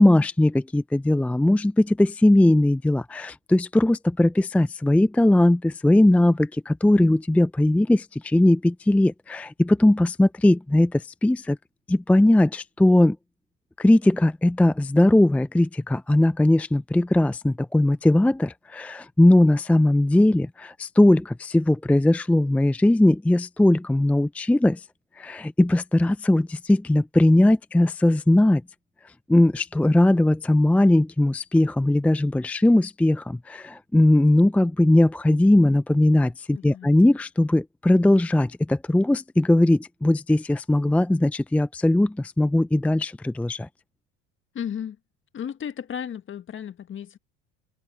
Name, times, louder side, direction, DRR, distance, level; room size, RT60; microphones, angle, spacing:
voice 1, 0.0-11.6 11.9-13.2 13.8-24.9 25.2-28.6 29.3-43.7, left 1 dB, 5° left, 0.5 m, -19 dB
voice 2, 36.5-36.9 44.5-45.0 45.3-47.2, left 8 dB, 40° left, 1.6 m, -34 dB
supercardioid pair, 85°, 32 cm